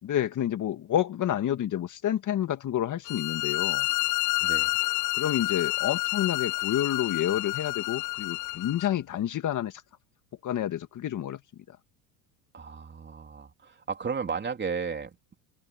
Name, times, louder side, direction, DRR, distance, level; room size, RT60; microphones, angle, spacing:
voice 1, 0.0-3.9 5.1-9.8 10.4-11.4 11.7-11.8, left 11 dB, 40° left, 2.0 m, -29 dB
sound 1, 3.0-8.9, left 24 dB, 65° left, 2.3 m, -29 dB
voice 2, 4.4-4.7 12.5-15.3, right 5 dB, 20° right, 3.5 m, -34 dB
open air
supercardioid pair, 105°, 48 cm